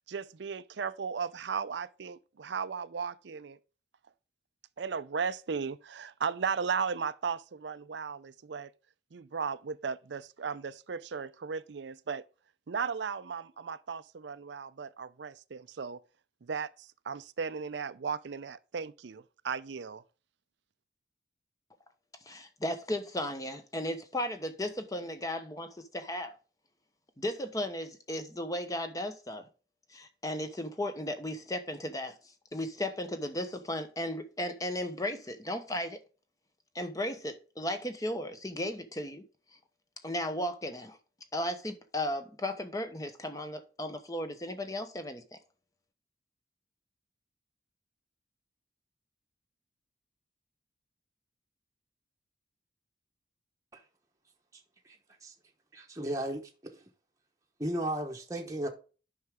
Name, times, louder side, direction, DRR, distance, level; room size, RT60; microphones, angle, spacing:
voice 1, 0.1-3.6 4.8-8.7 9.1-12.2 12.7-16.0 16.4-20.0, right 6 dB, 70° right, 0.5 m, -36 dB
voice 2, 22.3-26.4 27.2-29.4 29.9-32.2 32.5-36.0 36.7-39.2 40.0-41.0 41.3-45.4, left 1 dB, 20° left, 0.9 m, -35 dB
voice 3, 55.7-56.8 57.6-58.7, right 1 dB, 15° right, 1.0 m, -35 dB
9.4 x 5.8 x 3.6 m
head